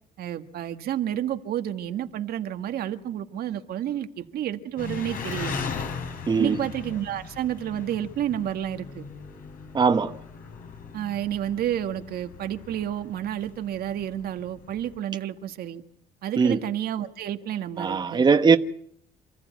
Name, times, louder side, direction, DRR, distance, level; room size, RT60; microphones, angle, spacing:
voice 1, 0.2-5.6 6.4-9.0 10.9-15.8 16.2-18.2, right 11 dB, 65° right, 1.7 m, -30 dB
Engine, 4.8-15.0, left 5 dB, 55° left, 5.0 m, -38 dB
voice 2, 6.3-6.6 9.7-10.1 16.4-16.6 17.8-18.6, right 5 dB, 25° right, 1.2 m, -20 dB
28.5 x 14.5 x 9.4 m
cardioid pair, 110°, 17 cm